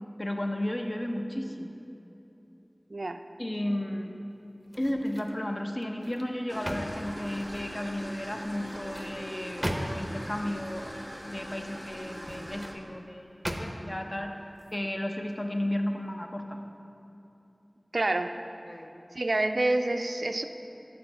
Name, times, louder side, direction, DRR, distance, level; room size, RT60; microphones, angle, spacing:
voice 1, 0.2-1.7 3.4-4.2 4.8-11.0 11.2-14.3 14.7-16.6 18.7-18.9, left 1 dB, 40° left, 3 dB, 0.6 m, -33 dB
voice 2, 2.9-3.2 17.9-18.4 19.1-20.4, right 2 dB, 85° right, 7 dB, 0.3 m, -27 dB
sound 1, 4.6-5.4 5.8-7.8 8.5-10.3 12.0-12.8 13.4-14.0 14.5-14.7, equal, 15° right, 0.6 m, -38 dB
sound 2, 6.5-12.7, equal, 15° left, 1.0 m, -41 dB
7.6 x 4.3 x 6.0 m, 2.9 s
wide cardioid pair, 40°, 0 cm